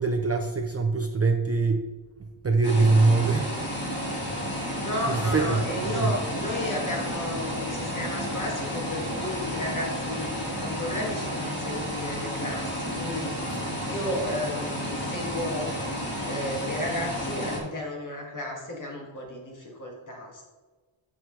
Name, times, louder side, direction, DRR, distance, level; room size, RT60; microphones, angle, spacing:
voice 1, 0.0-1.9 2.4-3.7 5.1-5.7 5.9-6.1 13.5-13.8, right 3 dB, 30° right, 5 dB, 0.4 m, -23 dB
sound 1, 2.6-17.6, equal, 20° left, 2.2 m, -32 dB
voice 2, 4.8-10.3 10.6-13.3 13.8-15.7 16.2-20.4, left 1 dB, 40° left, -1 dB, 2.1 m, -33 dB
13.5 x 4.8 x 3.2 m, 1.3 s
wide cardioid pair, 175°, 49 cm